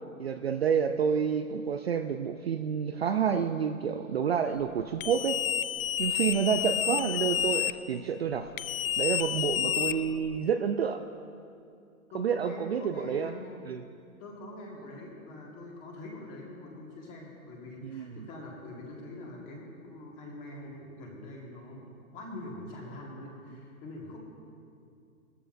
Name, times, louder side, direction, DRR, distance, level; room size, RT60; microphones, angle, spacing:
voice 1, 0.2-5.4 6.0-8.5 9.0-11.0 12.1-13.3 13.7-13.8 17.8-18.2, right 7 dB, 45° right, 6 dB, 0.4 m, -29 dB
sound 1, 5.0-7.7 8.6-10.4, left 12 dB, 70° left, 0.5 m, -30 dB
voice 2, 12.1-13.6 14.2-21.9 22.1-24.2, left 2 dB, 15° left, -1 dB, 1.6 m, -44 dB
19.5 x 13.5 x 2.5 m, 2.4 s
hypercardioid pair, 160°, 43 cm